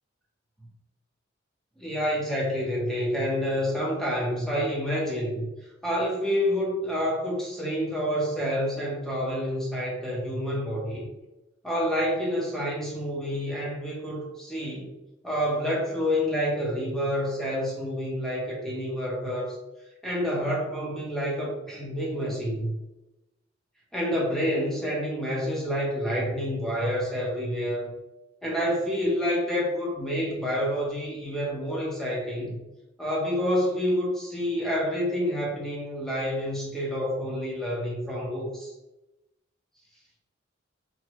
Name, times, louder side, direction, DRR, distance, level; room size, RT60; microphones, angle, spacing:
voice 1, 1.8-5.5 5.8-11.0 11.6-14.9 15.2-19.6 20.0-22.8 23.9-27.9 28.4-32.6 33.0-38.7, equal, 5° left, -5 dB, 1.2 m, -28 dB
4.8 x 2.6 x 3.1 m, 0.98 s
head